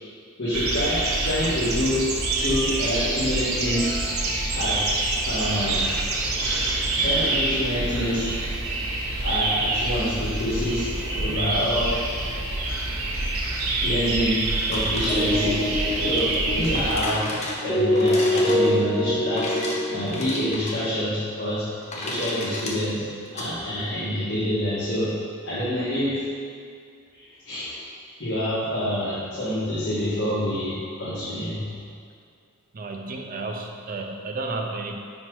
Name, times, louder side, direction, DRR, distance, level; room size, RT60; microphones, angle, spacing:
voice 1, 0.4-2.0 2.4-4.9 5.2-5.8 6.4-6.7 6.9-8.3 9.2-10.9 11.2-12.0 13.4-13.5 13.8-19.6 19.9-21.7 21.9-23.0 23.3-25.1 25.4-26.2 27.1-27.8 28.2-31.7, equal, 60° left, -12 dB, 1.5 m, -27 dB
sound 1, 0.5-17.0, right 2 dB, 75° right, 0.8 m, -26 dB
sound 2, 14.5-23.5, left 2 dB, 30° left, 0.8 m, -35 dB
sound 3, 15.1-20.2, left 1 dB, ahead, 0.7 m, -25 dB
voice 2, 32.7-35.0, right 3 dB, 40° right, 2 dB, 0.6 m, -32 dB
5.0 x 4.4 x 4.5 m, 2.2 s
head